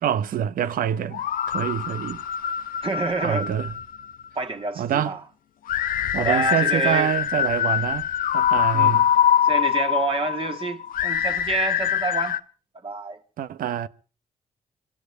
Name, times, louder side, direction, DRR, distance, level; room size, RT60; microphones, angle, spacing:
voice 1, 0.0-2.2 3.2-3.7 4.8-5.2 6.1-9.1 13.4-13.9, right 9 dB, 85° right, 0.9 m, -26 dB
sound 1, 1.1-4.3 5.7-12.4, left 9 dB, 85° left, 0.8 m, -24 dB
voice 2, 2.8-3.5 4.4-5.2 6.1-7.1 8.7-9.0 9.4-12.4 12.8-13.2, right 4 dB, 40° right, 1.9 m, -28 dB
25.5 x 16.5 x 3.3 m
cardioid pair, 75°, 14 cm